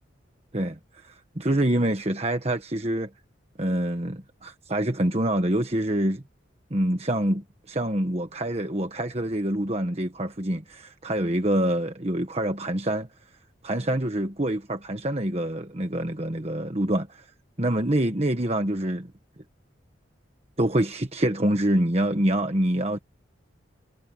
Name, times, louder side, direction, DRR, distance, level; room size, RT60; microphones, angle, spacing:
voice 1, 1.0-3.1 3.6-6.2 6.7-13.1 13.6-17.3 17.6-19.1 20.6-23.0, right 1 dB, 30° right, 1.4 m, -26 dB
head